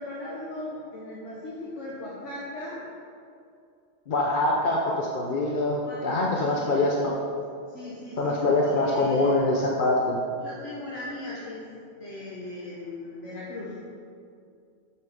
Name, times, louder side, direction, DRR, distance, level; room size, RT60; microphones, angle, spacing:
voice 1, 0.0-2.8 5.8-7.0 7.7-9.5 10.4-11.6 12.0-13.8, left 2 dB, 80° left, -6 dB, 1.5 m, -38 dB
voice 2, 4.1-7.1 8.2-10.2, left 2 dB, 50° left, -1 dB, 0.8 m, -24 dB
6.9 x 6.7 x 5.2 m, 2.4 s
omnidirectional pair, 1.2 m